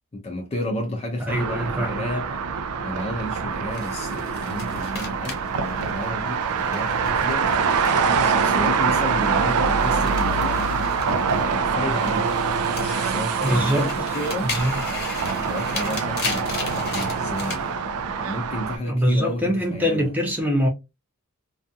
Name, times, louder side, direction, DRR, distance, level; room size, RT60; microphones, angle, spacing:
voice 1, 0.1-2.3 2.8-7.5 8.0-10.7 11.1-12.3 12.6-14.5 15.5-17.7 18.2-20.1, left 1 dB, 30° left, 0.4 m, -32 dB
voice 2, 1.2-2.0 13.4-13.9 14.4-14.8 18.8-20.7, equal, 10° right, 0.7 m, -23 dB
sound 1, 1.3-18.8, right 5 dB, 75° right, 0.3 m, -24 dB
sound 2, 3.7-8.3 8.6-11.6 11.9-17.6, left 4 dB, 45° left, 0.8 m, -36 dB
2.4 x 2.4 x 2.5 m
head